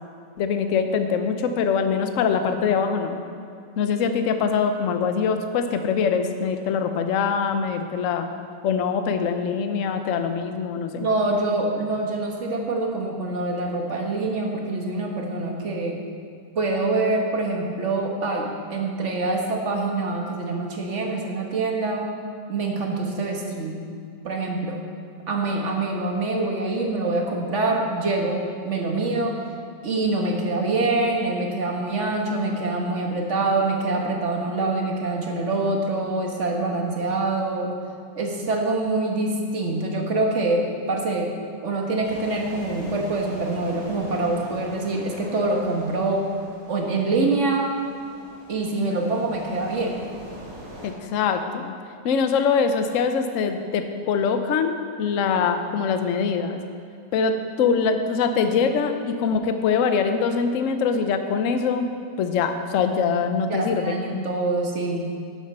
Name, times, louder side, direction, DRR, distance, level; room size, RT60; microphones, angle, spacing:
voice 1, 0.4-3.2 3.8-8.3 8.6-11.0 50.8-51.7 52.0-56.6 57.1-61.8 62.2-64.0, left 6 dB, 60° left, 7 dB, 0.9 m, -23 dB
voice 2, 11.0-16.0 16.5-22.1 22.5-23.8 24.2-24.8 25.3-28.4 28.6-29.4 29.8-37.7 38.1-41.3 41.6-46.3 46.7-47.7 48.5-50.0 63.5-65.1, right 2 dB, 45° right, 0 dB, 1.5 m, -25 dB
sound 1, 42.0-50.9, right 1 dB, 75° right, 3.6 m, -42 dB
11.5 x 7.1 x 5.5 m, 2.4 s
omnidirectional pair, 1.9 m